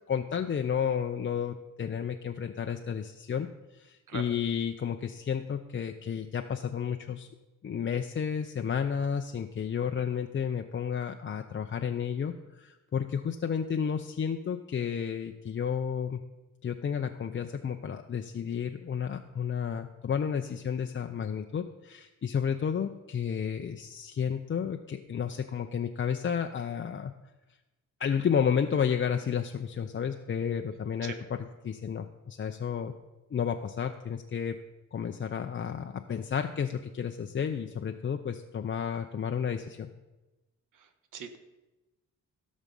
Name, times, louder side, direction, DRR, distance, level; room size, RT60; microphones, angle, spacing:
voice 1, 0.1-7.3 7.6-16.2 16.6-27.1 28.0-32.9 33.3-34.6 34.9-39.9, left 7 dB, 40° left, 5 dB, 0.6 m, -32 dB
voice 2, 40.7-41.4, right 7 dB, 75° right, 8 dB, 1.3 m, -41 dB
16.5 x 6.2 x 5.4 m, 1.1 s
cardioid pair, 105°, 32 cm